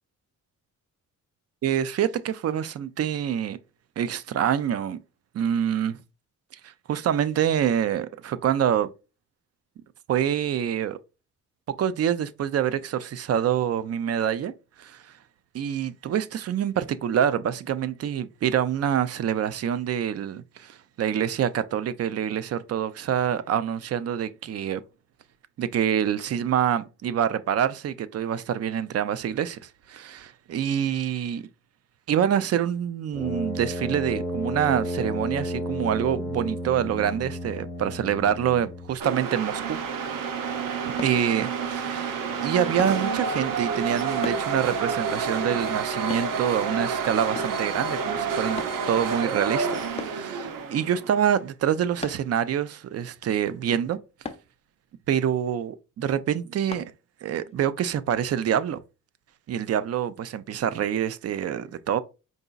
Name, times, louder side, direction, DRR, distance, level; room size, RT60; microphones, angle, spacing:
voice 1, 1.6-3.6 4.0-5.0 5.3-6.0 6.5-8.9 10.1-11.0 11.8-14.5 14.8-15.0 15.5-24.8 25.6-31.5 32.1-39.8 41.0-54.0 55.1-56.9 57.2-58.8 59.5-62.0, right 9 dB, 50° right, 0.5 m, -26 dB
Brass instrument, 33.1-39.0, equal, 5° right, 1.1 m, -32 dB
sound 1, 39.0-51.3, right 5 dB, 85° right, 0.8 m, -29 dB
sound 2, 41.0-41.2 42.8-43.0 44.2-44.5 46.1-46.3 47.3-47.6 48.6-48.8 50.0-50.2 52.0-52.3 54.2-54.5 56.7-56.9 57.5-57.6, left 5 dB, 20° left, 0.4 m, -36 dB
4.8 x 4.0 x 2.3 m
wide cardioid pair, 140°, 32 cm